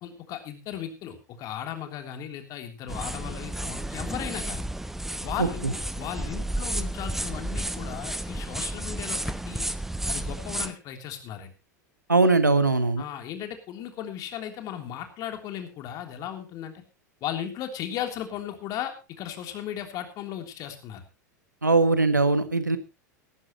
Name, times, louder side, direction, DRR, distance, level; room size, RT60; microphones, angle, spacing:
voice 1, 0.0-4.7 5.2-9.7 10.0-11.5 13.0-16.8 17.2-21.0, left 10 dB, 40° left, 5 dB, 3.3 m, -36 dB
sound 1, 2.9-10.7, right 1 dB, 5° right, 1.0 m, -32 dB
voice 2, 5.4-5.7 12.1-13.0 21.6-22.8, right 3 dB, 85° right, 12 dB, 1.5 m, -21 dB
17.5 x 14.5 x 3.0 m, 0.29 s
figure-of-eight pair, 85°, 10 cm